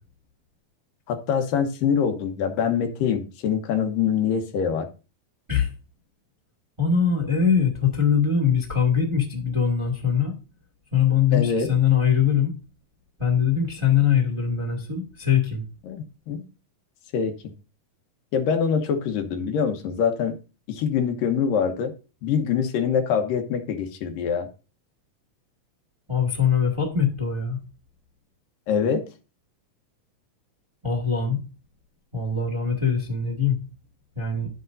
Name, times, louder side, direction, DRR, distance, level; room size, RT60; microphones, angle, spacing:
voice 1, 1.1-4.9 11.3-11.7 15.8-16.4 17.1-17.5 18.3-20.3 20.7-21.9 22.2-24.5 28.7-29.1, left 7 dB, 80° left, 6 dB, 2.7 m, -24 dB
voice 2, 6.8-10.3 10.9-12.5 13.2-15.6 26.1-27.6 30.8-31.4 32.1-33.6 34.1-34.5, left 7 dB, 10° right, 0 dB, 1.4 m, -22 dB
11.5 x 8.0 x 2.6 m, 0.32 s
omnidirectional pair, 3.9 m